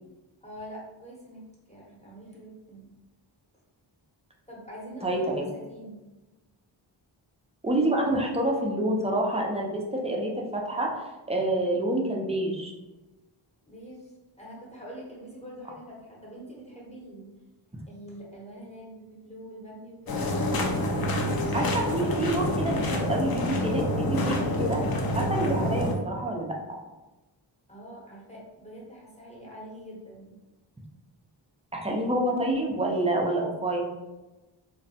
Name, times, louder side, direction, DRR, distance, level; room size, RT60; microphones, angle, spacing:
voice 1, 0.4-2.9 4.5-6.0 13.7-14.1 14.4-17.3 17.9-20.3 20.9-21.6 27.7-30.3, equal, 15° left, -5 dB, 0.9 m, -44 dB
voice 2, 5.0-5.4 7.6-10.9 11.3-12.7 21.5-24.8 25.1-26.8 31.7-33.8, right 1 dB, 15° right, -1 dB, 0.5 m, -27 dB
sound 1, 20.1-25.9, left 1 dB, 50° left, 0.5 m, -27 dB
2.3 x 2.1 x 2.7 m, 1.1 s
cardioid pair, 40°, 47 cm